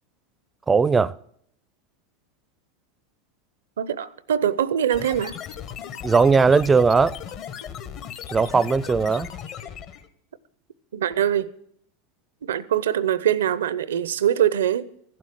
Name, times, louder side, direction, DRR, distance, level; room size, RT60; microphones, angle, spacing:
voice 1, 0.7-1.1 6.0-7.1 8.3-9.3, right 4 dB, 15° right, 0.4 m, -18 dB
voice 2, 3.8-5.4 10.9-11.5 12.4-14.9, right 10 dB, 85° right, 0.6 m, -23 dB
sound 1, 4.9-10.1, left 8 dB, 50° left, 1.1 m, -37 dB
14.5 x 7.7 x 7.5 m
hypercardioid pair, 105°, 0 cm